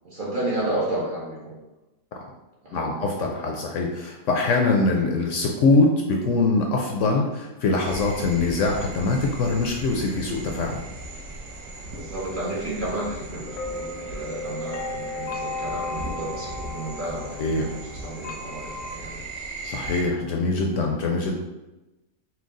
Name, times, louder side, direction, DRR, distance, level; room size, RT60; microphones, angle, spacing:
voice 1, 0.0-1.6 2.6-3.1 11.9-19.2, right 1 dB, 45° right, -5 dB, 0.8 m, -32 dB
voice 2, 2.7-10.8 17.4-17.7 19.6-21.3, left 3 dB, 70° left, 1 dB, 0.8 m, -23 dB
sound 1, 7.9-20.0, right 2 dB, 65° right, 1.0 m, -38 dB
sound 2, 13.5-18.9, left 3 dB, 90° left, 1.2 m, -35 dB
4.5 x 2.2 x 3.6 m, 1.0 s
omnidirectional pair, 1.5 m